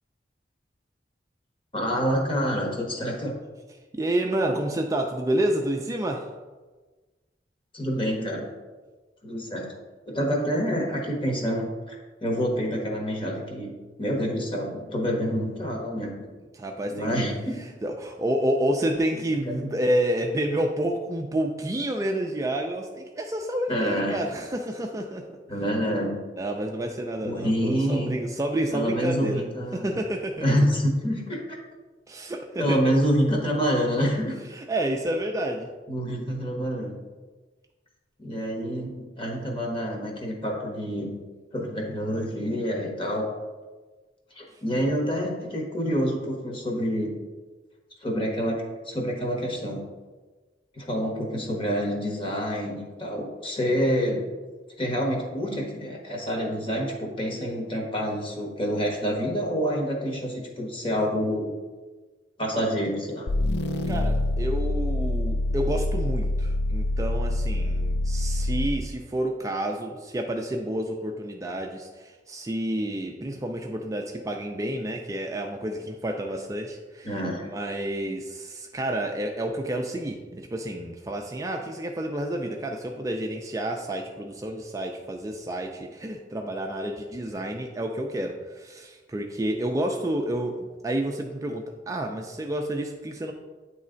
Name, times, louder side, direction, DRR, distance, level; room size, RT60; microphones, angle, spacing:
voice 1, 1.7-3.4 7.7-8.5 9.2-9.7 10.1-13.7 14.0-16.3 16.9-17.6 19.4-19.7 23.7-24.2 25.5-26.2 27.2-28.2 28.7-29.9 30.4-31.6 32.6-34.4 35.9-36.9 38.2-41.2 41.5-43.3 44.3-47.2 48.0-49.8 50.7-54.2 54.8-61.5 62.4-63.3 77.0-77.5, equal, 30° left, -1 dB, 1.3 m, -27 dB
voice 2, 3.9-6.3 16.5-17.2 17.8-25.3 26.4-30.4 32.1-32.8 34.5-35.7 63.9-77.1 77.5-93.3, right 1 dB, 20° right, 2 dB, 0.4 m, -29 dB
sound 1, 63.3-68.9, left 1 dB, 70° left, 0.4 m, -26 dB
9.1 x 3.2 x 3.8 m, 1.3 s
head